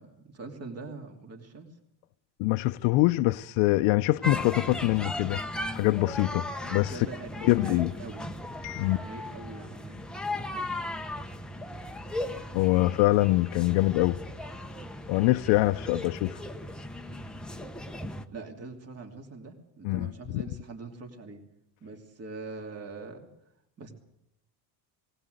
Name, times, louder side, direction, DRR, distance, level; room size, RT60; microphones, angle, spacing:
voice 1, 0.0-1.7 6.8-8.3 8.9-10.0 18.3-21.4 21.8-23.3 23.8-23.9, right 3 dB, 30° right, 2.8 m, -43 dB
voice 2, 2.4-5.4 5.7-7.1 7.4-7.9 8.6-9.0 12.5-14.2 15.1-16.4 19.8-20.4, left 19 dB, 85° left, 0.7 m, -24 dB
Children playing, 4.2-18.2, left 1 dB, ahead, 0.8 m, -37 dB
19.5 x 19.0 x 7.9 m
cardioid pair, 170°, 46 cm